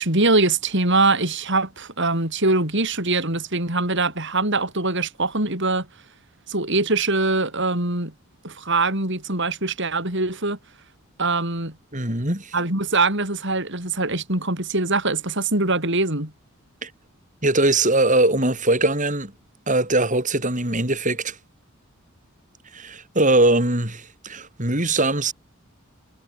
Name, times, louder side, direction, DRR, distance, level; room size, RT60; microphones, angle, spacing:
voice 1, 0.0-5.9 6.5-8.1 8.4-10.6 11.2-11.8 12.5-16.3, right 3 dB, 55° right, 7.6 m, -23 dB
voice 2, 11.9-12.5 16.8-16.9 17.4-19.3 19.7-21.4 22.7-25.3, right 2 dB, 35° right, 7.8 m, -21 dB
head